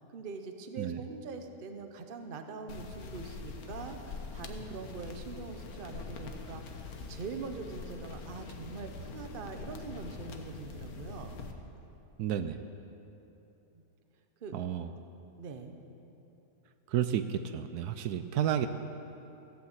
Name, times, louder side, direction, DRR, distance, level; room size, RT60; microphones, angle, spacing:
voice 1, 0.0-11.4 14.4-14.5 15.4-15.7, right 4 dB, 40° right, 6 dB, 0.9 m, -43 dB
sound 1, 2.7-11.5, left 4 dB, 65° left, 1.4 m, -44 dB
voice 2, 12.2-12.6 14.5-14.9 16.9-18.7, right 10 dB, 75° right, 9 dB, 1.1 m, -31 dB
15.5 x 8.4 x 7.9 m, 2.9 s
omnidirectional pair, 1.7 m